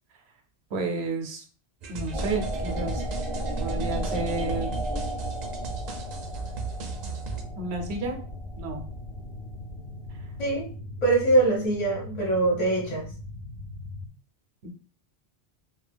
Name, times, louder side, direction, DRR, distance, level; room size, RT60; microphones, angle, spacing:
voice 1, 0.7-1.4 1.9-3.0 3.6-4.8 7.6-8.2 8.6-8.9 14.6-14.7, right 3 dB, 85° right, 3 dB, 0.9 m, -31 dB
sound 1, 1.8-7.4, right 4 dB, 55° right, 0.5 m, -36 dB
sound 2, 2.1-8.7, right 1 dB, 5° left, 0.6 m, -34 dB
sound 3, 2.4-14.1, left 2 dB, 70° left, 0.8 m, -40 dB
voice 2, 11.0-13.1, right 2 dB, 40° left, -3 dB, 0.9 m, -23 dB
2.3 x 2.3 x 3.3 m, 0.40 s
omnidirectional pair, 1.1 m